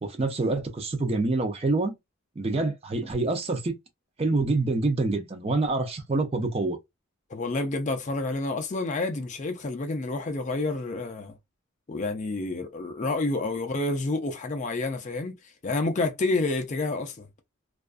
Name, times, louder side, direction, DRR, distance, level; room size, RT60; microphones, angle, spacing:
voice 1, 0.0-1.9 2.4-3.8 4.2-6.8, right 3 dB, 30° right, 0.5 m, -26 dB
voice 2, 7.3-11.3 11.9-15.3 15.6-17.3, left 2 dB, 35° left, 0.4 m, -29 dB
2.4 x 2.3 x 2.3 m
head